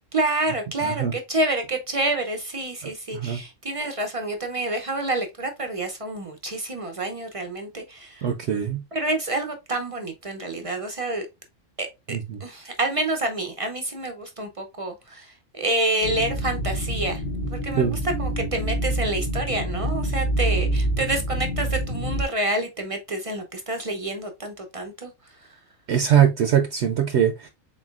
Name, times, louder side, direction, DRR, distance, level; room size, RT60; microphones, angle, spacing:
voice 1, 0.1-8.3 8.9-11.3 11.8-17.2 17.5-25.1, right 2 dB, 45° right, 0.4 m, -28 dB
voice 2, 0.8-1.1 3.1-3.4 8.2-8.8 12.1-12.4 17.8-18.0 25.9-27.5, right 9 dB, 65° right, 0.8 m, -22 dB
sound 1, 16.0-22.2, right 1 dB, 80° left, 1.2 m, -27 dB
4.1 x 3.9 x 2.3 m
omnidirectional pair, 1.4 m